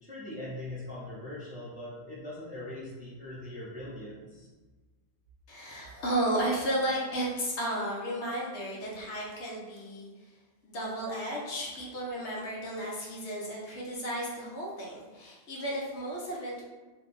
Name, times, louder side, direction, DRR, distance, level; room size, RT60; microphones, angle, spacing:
voice 1, 0.0-4.5, left 1 dB, 10° right, -7 dB, 0.4 m, -41 dB
voice 2, 5.5-10.3 10.6-16.6, right 1 dB, 75° left, -4 dB, 1.1 m, -33 dB
2.7 x 2.3 x 3.8 m, 1.3 s
omnidirectional pair, 1.2 m